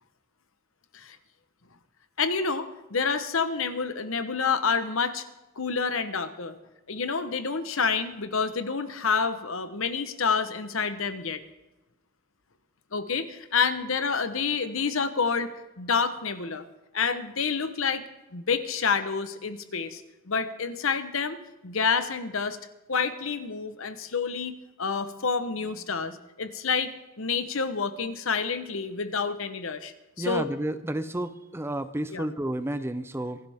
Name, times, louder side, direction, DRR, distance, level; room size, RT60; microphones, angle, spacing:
voice 1, 2.2-5.2 5.6-6.6 6.9-11.4 12.9-15.5 15.8-16.6 16.9-18.0 18.3-20.0 20.3-21.4 21.6-22.6 22.9-30.5 32.1-32.3, left 5 dB, 70° left, 11 dB, 1.0 m, -28 dB
voice 2, 30.2-33.4, right 1 dB, 10° right, 12 dB, 0.5 m, -31 dB
26.0 x 11.5 x 3.6 m, 1.0 s
head